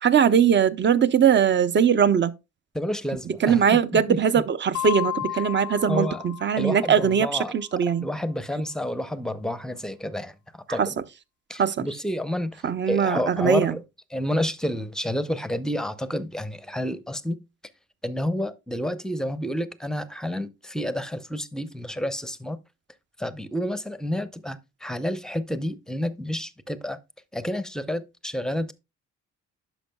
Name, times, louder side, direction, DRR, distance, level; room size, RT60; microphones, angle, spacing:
voice 1, 0.0-2.3 3.4-8.0 10.8-10.9 11.6-11.8 12.6-13.7, right 7 dB, 40° right, 0.6 m, -21 dB
voice 2, 2.7-4.2 5.9-6.2 6.6-7.5 8.0-11.0 11.5-13.8 14.1-17.4 18.0-22.6 23.2-27.0 27.3-28.7, left 1 dB, ahead, 0.6 m, -29 dB
sound 1, 4.7-7.2, left 13 dB, 90° left, 0.6 m, -33 dB
10.0 x 6.2 x 2.2 m
cardioid pair, 90°, 30 cm